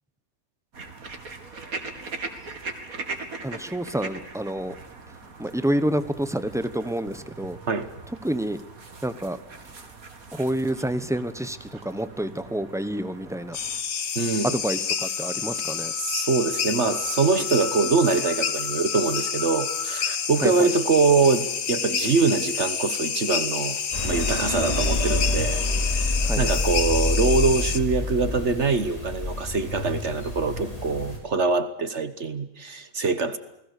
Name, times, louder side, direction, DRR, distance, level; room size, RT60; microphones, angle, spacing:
sound 1, 0.7-13.8, right 4 dB, 85° right, 2.7 m, -40 dB
voice 1, 3.4-4.7 5.4-7.6 8.1-8.6 9.0-9.4 10.3-13.6 14.4-15.9 20.4-20.7 26.2-26.4, right 1 dB, ahead, 0.9 m, -28 dB
sound 2, 13.5-27.8, left 7 dB, 70° left, 1.7 m, -29 dB
voice 2, 14.1-14.6 16.0-23.8 24.0-25.6 25.9-33.4, right 4 dB, 55° right, 1.5 m, -24 dB
sound 3, 23.9-31.2, left 2 dB, 25° left, 5.4 m, -27 dB
30.0 x 19.5 x 6.7 m
omnidirectional pair, 1.5 m